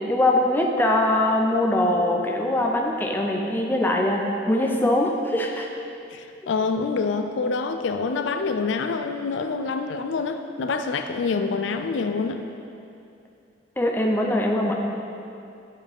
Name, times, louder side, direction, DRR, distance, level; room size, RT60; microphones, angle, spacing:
voice 1, 0.1-5.7 13.8-14.7, left 1 dB, 10° left, 0 dB, 0.5 m, -22 dB
voice 2, 6.1-12.4, left 4 dB, 70° left, 7 dB, 0.4 m, -26 dB
7.8 x 7.2 x 3.5 m, 2.6 s
head